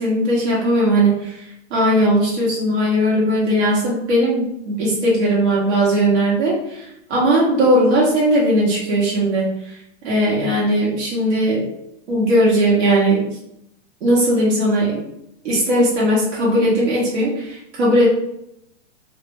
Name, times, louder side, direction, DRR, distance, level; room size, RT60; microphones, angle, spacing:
voice 1, 0.0-9.8 10.0-11.7 12.1-13.3 14.0-15.0 15.4-18.1, right 1 dB, 60° right, -6 dB, 0.9 m, -18 dB
2.2 x 2.0 x 3.3 m, 0.78 s
hypercardioid pair, 150°, 36 cm